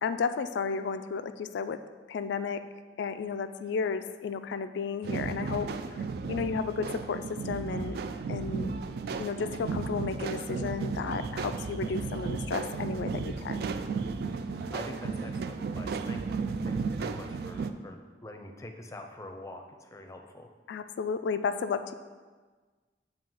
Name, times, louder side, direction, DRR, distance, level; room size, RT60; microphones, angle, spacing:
voice 1, 0.0-1.8 2.1-2.6 3.0-5.7 6.3-8.0 8.3-8.7 9.2-13.6 20.7-21.9, left 5 dB, 80° left, 10 dB, 0.3 m, -33 dB
sound 1, 5.0-17.7, right 4 dB, 60° right, 0.3 m, -34 dB
voice 2, 14.4-16.4 16.7-20.5, left 1 dB, 20° left, 4 dB, 0.5 m, -45 dB
7.3 x 2.8 x 5.4 m, 1.4 s
head